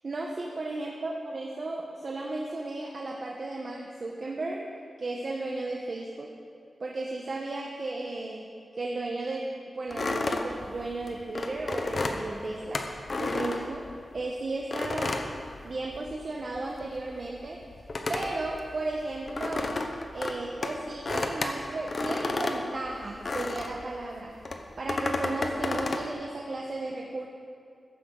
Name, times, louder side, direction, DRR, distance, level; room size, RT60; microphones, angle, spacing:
voice 1, 0.0-4.6 5.0-6.3 6.8-8.5 8.7-12.8 13.2-13.8 14.1-15.2 15.6-17.6 18.1-19.8 20.1-24.4 24.8-27.3, right 2 dB, 45° right, -1 dB, 1.2 m, -34 dB
sound 1, 9.9-14.2 14.7-16.2 16.4-23.8 24.4-26.1, left 2 dB, 40° left, 1.0 m, -32 dB
15.0 x 14.5 x 4.0 m, 2.4 s
wide cardioid pair, 155°, 0 cm